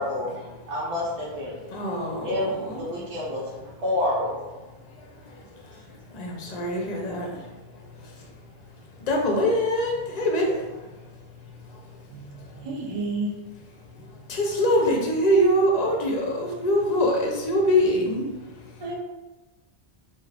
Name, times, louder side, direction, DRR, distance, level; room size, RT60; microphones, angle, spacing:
voice 1, 0.0-1.5 2.2-2.5 2.8-3.4 3.8-4.5, left 1 dB, 85° right, -6 dB, 1.1 m, -28 dB
voice 2, 1.5-3.1 3.4-3.7 4.8-12.7 13.8-18.8, equal, 45° left, 0 dB, 0.6 m, -26 dB
voice 3, 12.1-13.4 14.0-14.1 18.8-18.9, right 2 dB, 55° right, -2 dB, 0.4 m, -32 dB
2.5 x 2.4 x 3.3 m, 1.1 s
omnidirectional pair, 1.1 m